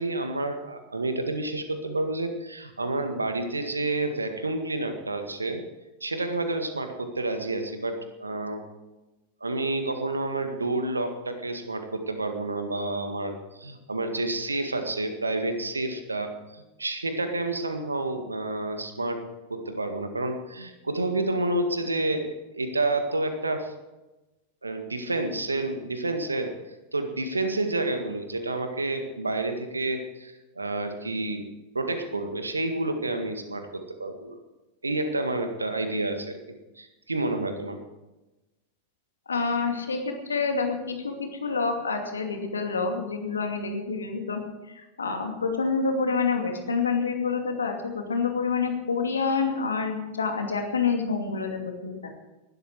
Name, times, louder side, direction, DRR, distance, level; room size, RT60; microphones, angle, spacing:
voice 1, 0.0-5.6 6.0-8.6 9.4-22.3 22.5-23.7 24.6-26.5 26.9-31.5 31.7-34.4 34.8-36.4 36.8-37.8, right 2 dB, 80° right, 7 dB, 1.8 m, -29 dB
voice 2, 39.3-44.4 44.7-52.2, left 5 dB, 75° left, 4 dB, 2.6 m, -28 dB
19.0 x 12.5 x 4.8 m, 1.1 s
figure-of-eight pair, 90°, 0 cm